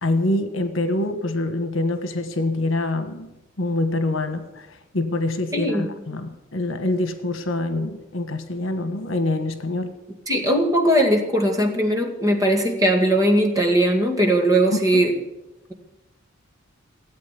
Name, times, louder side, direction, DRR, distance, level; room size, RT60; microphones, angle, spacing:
voice 1, 0.0-3.3 3.6-4.7 4.9-9.9 14.9-15.0, left 2 dB, 70° left, 1.4 m, -25 dB
voice 2, 5.5-5.9 10.3-15.2, right 1 dB, 15° right, 2.2 m, -19 dB
17.0 x 8.5 x 8.5 m
head